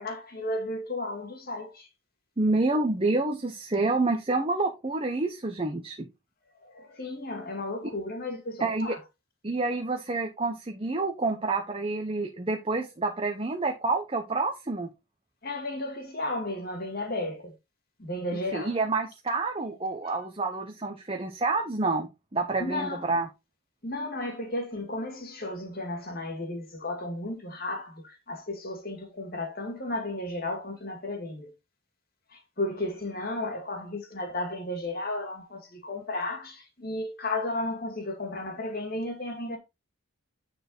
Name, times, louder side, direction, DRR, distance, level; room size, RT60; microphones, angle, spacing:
voice 1, 0.0-1.9 6.6-9.0 15.4-17.5 18.0-18.8 20.0-20.2 22.6-23.1 23.8-31.5 32.3-39.6, left 2 dB, 45° left, 2.1 m, -34 dB
voice 2, 2.4-6.1 8.6-8.9 9.4-14.9 18.5-23.3, right 3 dB, 25° right, 0.9 m, -28 dB
9.9 x 4.3 x 4.0 m
head